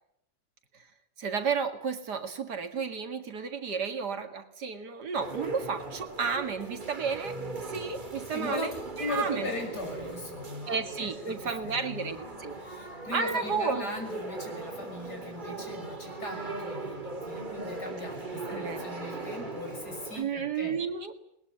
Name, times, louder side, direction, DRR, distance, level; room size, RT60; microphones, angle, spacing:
voice 1, 1.2-7.4 7.7-8.7 9.0-9.5 10.7-12.6 13.1-13.9 18.5-18.8 20.2-21.1, right 5 dB, 65° right, 8 dB, 2.5 m, -32 dB
sound 1, 5.2-20.2, right 3 dB, 25° right, 2.4 m, -39 dB
voice 2, 8.3-11.3 11.6-12.1 12.6-20.8, left 2 dB, 60° left, 2 dB, 6.9 m, -39 dB
21.0 x 20.5 x 9.9 m, 0.77 s
omnidirectional pair, 1.9 m